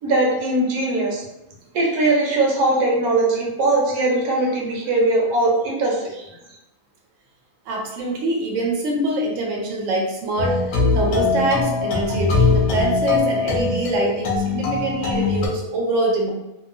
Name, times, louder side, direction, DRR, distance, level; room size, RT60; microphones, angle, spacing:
voice 1, 0.0-1.2 1.7-6.3, right 2 dB, 90° right, -2 dB, 1.2 m, -20 dB
voice 2, 7.7-10.6 10.9-16.3, right 2 dB, 65° right, 0 dB, 0.9 m, -24 dB
sound 1, 10.4-15.5, left 4 dB, 65° left, 0.9 m, -21 dB
2.8 x 2.3 x 2.5 m, 0.90 s
omnidirectional pair, 1.6 m